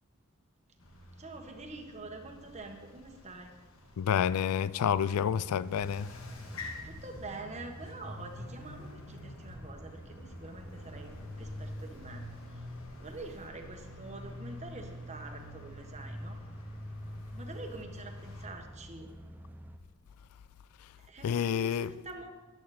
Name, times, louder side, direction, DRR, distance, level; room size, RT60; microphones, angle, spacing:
sound 1, 0.8-18.5, left 1 dB, 65° left, 1.6 m, -46 dB
voice 1, 1.2-3.5 6.8-12.3 12.5-12.7 13.0-16.4 17.3-19.1 21.0-22.3, right 2 dB, 30° right, 1.4 m, -46 dB
voice 2, 4.0-6.1 20.8-21.0 21.2-21.9, left 8 dB, 85° left, 0.4 m, -29 dB
sound 2, 5.2-19.8, right 1 dB, 10° right, 0.7 m, -52 dB
13.5 x 10.5 x 4.3 m
head